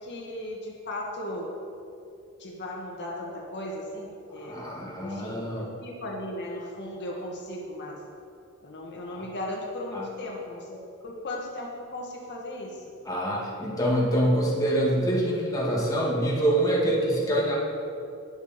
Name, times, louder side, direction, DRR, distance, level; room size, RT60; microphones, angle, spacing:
voice 1, 0.0-1.5 2.4-4.5 5.0-8.0 8.6-12.8, left 1 dB, 55° left, -2 dB, 1.8 m, -36 dB
voice 2, 4.4-5.7 9.9-10.1 13.1-17.6, right 1 dB, 15° left, -5 dB, 2.1 m, -25 dB
20.0 x 6.9 x 4.4 m, 2.5 s
head